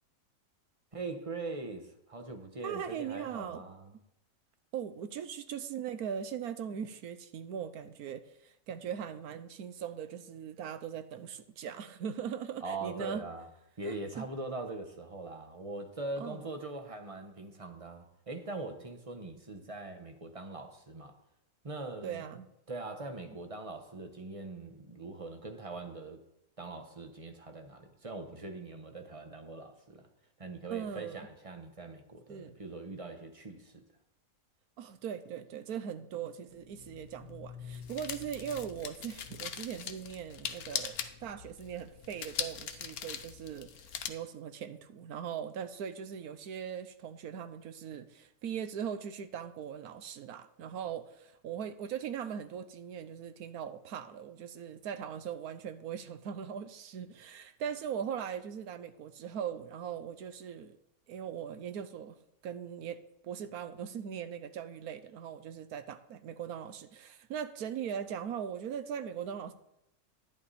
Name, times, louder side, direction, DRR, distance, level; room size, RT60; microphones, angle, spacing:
voice 1, 0.9-3.9 12.6-13.5 13.8-21.2 21.6-22.2 22.7-26.2 26.6-30.1 30.4-33.8, right 3 dB, 25° right, 1.0 m, -42 dB
voice 2, 2.6-3.6 4.7-13.2 13.8-14.3 16.2-16.5 22.0-22.5 30.7-31.3 32.3-32.5 34.8-60.8 61.1-62.2 62.4-69.5, right 8 dB, 80° right, 1.3 m, -40 dB
sound 1, 36.5-44.1, left 8 dB, 75° left, 1.3 m, -41 dB
11.0 x 10.5 x 4.1 m
omnidirectional pair, 1.6 m